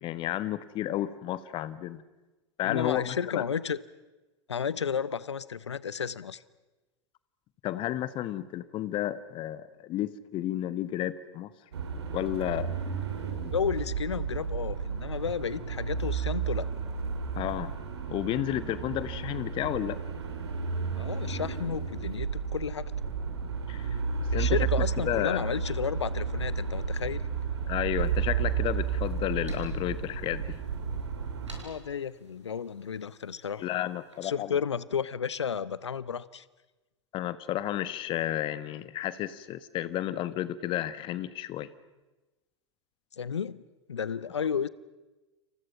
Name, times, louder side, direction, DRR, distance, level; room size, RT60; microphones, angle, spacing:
voice 1, 0.0-2.0 2.6-3.4 7.6-11.5 12.1-12.8 17.3-17.7 18.1-20.0 23.7-23.9 24.3-24.6 25.0-25.4 27.7-30.6 33.6-34.6 37.1-41.7, left 13 dB, 35° left, 15 dB, 1.4 m, -32 dB
voice 2, 2.6-3.8 4.5-6.4 13.5-16.7 21.0-22.9 24.3-27.2 31.5-33.6 34.2-36.4 43.2-43.6 43.9-44.7, left 7 dB, 75° left, 19 dB, 1.0 m, -32 dB
sound 1, 11.7-31.6, right 6 dB, 65° right, 3.5 m, -32 dB
sound 2, 28.4-34.3, right 1 dB, 85° right, 6.0 m, -55 dB
30.0 x 28.0 x 5.9 m, 1.1 s
figure-of-eight pair, 90°, 15 cm